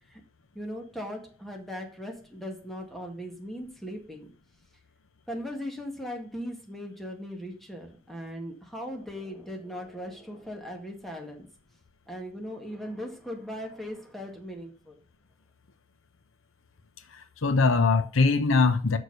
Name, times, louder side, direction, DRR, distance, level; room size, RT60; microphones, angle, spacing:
voice 1, 0.5-4.3 5.3-11.5 12.1-15.0, equal, ahead, 1.8 m, -38 dB
voice 2, 17.1-19.0, left 4 dB, 85° left, 0.8 m, -22 dB
6.6 x 6.2 x 6.6 m
head